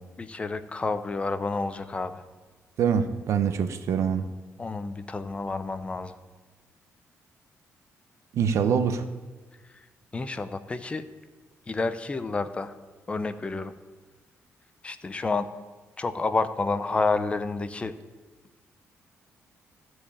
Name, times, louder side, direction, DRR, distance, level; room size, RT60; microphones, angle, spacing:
voice 1, 0.2-2.2 4.6-6.1 10.1-11.0 11.7-12.7 13.1-13.7 14.8-15.5 16.0-17.9, left 3 dB, 25° left, 11 dB, 0.6 m, -29 dB
voice 2, 2.8-4.3 8.3-9.0, right 7 dB, 70° right, 10 dB, 0.9 m, -24 dB
13.5 x 4.7 x 8.6 m, 1.3 s
cardioid pair, 130°, 5 cm